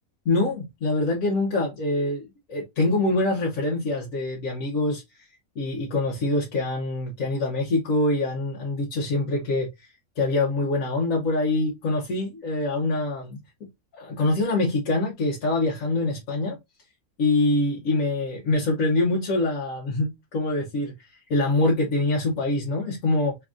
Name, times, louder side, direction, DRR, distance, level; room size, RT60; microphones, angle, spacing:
voice 1, 0.2-5.0 5.6-9.9 10.2-13.4 13.9-16.6 17.2-23.4, left 2 dB, 65° left, 1.3 m, -25 dB
3.7 x 3.4 x 2.4 m
omnidirectional pair, 1.5 m